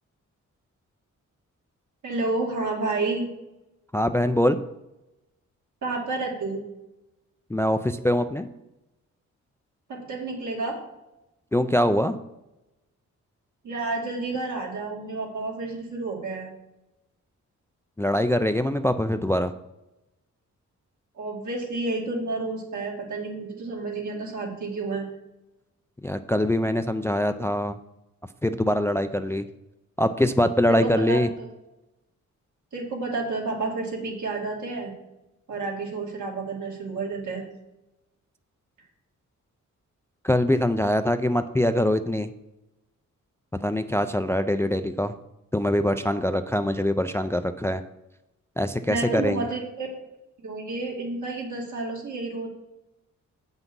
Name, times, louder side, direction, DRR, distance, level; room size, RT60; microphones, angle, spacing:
voice 1, 2.0-3.3 5.8-6.6 9.9-10.8 13.6-16.5 21.2-25.1 30.7-31.5 32.7-34.9 35.5-37.4 48.9-49.9 50.4-52.5, right 3 dB, 75° right, -1 dB, 2.3 m, -30 dB
voice 2, 3.9-4.6 7.5-8.5 11.5-12.2 18.0-19.5 26.0-27.8 28.4-29.5 30.0-31.3 40.2-42.3 43.6-45.1 45.5-47.8 48.6-49.4, left 1 dB, 10° left, 10 dB, 0.3 m, -23 dB
8.1 x 5.8 x 5.4 m, 0.94 s
wide cardioid pair, 115°, 30 cm